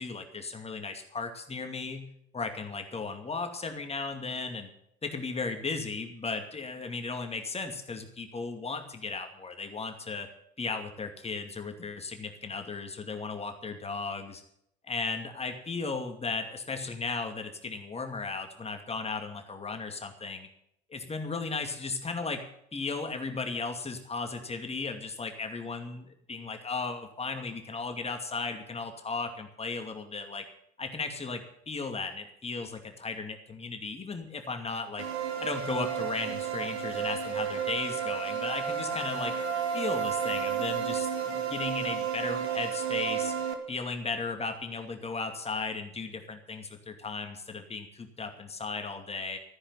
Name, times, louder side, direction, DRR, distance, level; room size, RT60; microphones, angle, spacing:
voice 1, 0.0-2.1 2.3-4.7 5.0-10.3 10.6-14.4 14.9-20.5 20.9-22.5 22.7-30.4 30.8-35.0 35.4-39.3 39.7-43.3 43.7-49.4, left 4 dB, 20° left, 5 dB, 2.4 m, -36 dB
sound 1, 35.0-43.5, right 7 dB, 80° right, 1.7 m, -32 dB
14.5 x 9.9 x 7.2 m, 0.73 s
figure-of-eight pair, 70°, 32 cm